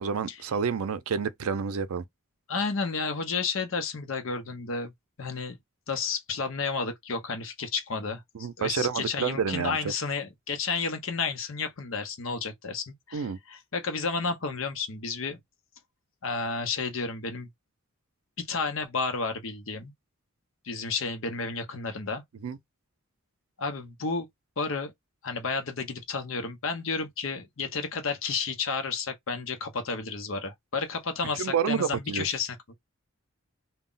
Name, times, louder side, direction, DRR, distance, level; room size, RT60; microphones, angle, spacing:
voice 1, 0.0-2.0 8.3-9.8 13.1-13.4 22.4-22.6 31.4-32.3, right 6 dB, 85° right, 0.4 m, -29 dB
voice 2, 2.5-4.9 5.2-5.6 5.9-15.4 16.2-17.5 18.4-19.9 20.6-22.2 23.6-24.3 24.6-24.9 25.2-32.7, left 4 dB, 65° left, 0.7 m, -31 dB
2.2 x 2.0 x 3.7 m
head